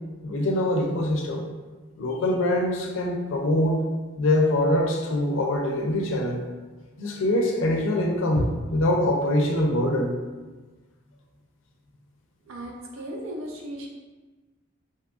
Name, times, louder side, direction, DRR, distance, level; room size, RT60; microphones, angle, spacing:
voice 1, 0.2-1.5 2.0-3.8 4.2-6.4 7.0-10.1, left 1 dB, 70° left, 1 dB, 0.4 m, -24 dB
voice 2, 12.5-13.9, right 1 dB, 85° right, 0 dB, 0.5 m, -36 dB
2.6 x 2.3 x 2.4 m, 1.3 s
head